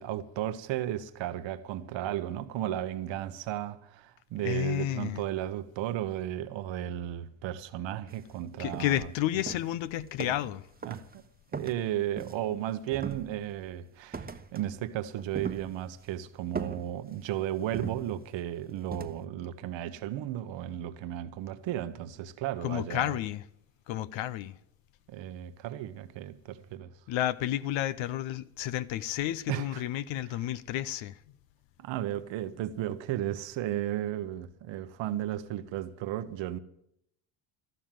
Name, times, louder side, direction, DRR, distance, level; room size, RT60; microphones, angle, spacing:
voice 1, 0.0-9.1 10.8-11.2 11.5-23.1 25.1-26.9 29.5-29.8 30.3-30.4 31.8-36.6, right 12 dB, 65° right, 1.1 m, -34 dB
voice 2, 4.4-5.2 8.6-10.7 22.6-23.4 23.9-24.6 27.1-31.2, left 13 dB, 65° left, 0.9 m, -31 dB
sound 1, 8.1-8.3 8.7-9.1 9.5-10.6 10.8-11.1 11.5-12.6 12.9-13.6 14.1-14.7 15.0-16.1 16.5-17.3 17.7-18.4 18.9-19.2, right 4 dB, 20° right, 1.1 m, -40 dB
13.0 x 12.0 x 7.7 m
supercardioid pair, 75°, 49 cm